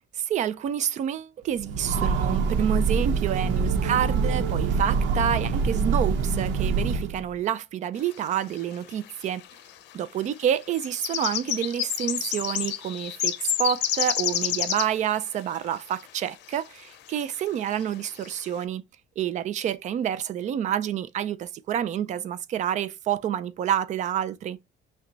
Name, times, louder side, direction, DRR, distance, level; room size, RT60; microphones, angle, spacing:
voice 1, 0.3-9.4 9.9-18.8 19.2-24.6, right 9 dB, 40° right, 0.4 m, -28 dB
Train, 1.6-7.3, right 5 dB, 90° right, 0.9 m, -25 dB
sound 1, 8.6-8.7 8.9-9.5 10.4-15.0 15.9-16.0 16.6-16.7 17.1-17.4 17.8-17.9 18.1-18.4, left 12 dB, 70° left, 0.6 m, -28 dB
5.7 x 2.3 x 3.9 m
cardioid pair, 175°, 18 cm